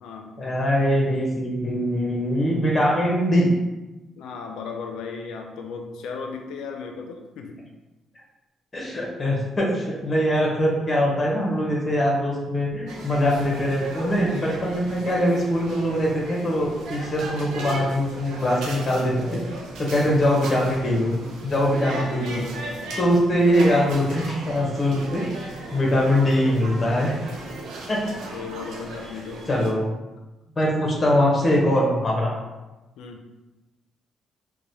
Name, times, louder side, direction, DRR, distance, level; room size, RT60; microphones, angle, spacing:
voice 1, 0.4-3.5 8.7-19.4 19.8-21.1 21.4-22.4 23.0-27.2 27.9-28.0 29.5-29.9 30.6-32.4, equal, 30° left, -2 dB, 0.8 m, -22 dB
voice 2, 4.2-7.6 21.9-22.8 28.3-29.4 33.0-33.2, left 5 dB, 85° left, 3 dB, 0.4 m, -36 dB
sound 1, 12.9-29.7, right 2 dB, 80° right, 0.5 m, -37 dB
3.0 x 2.1 x 2.7 m, 1.1 s
cardioid pair, 90°, 0 cm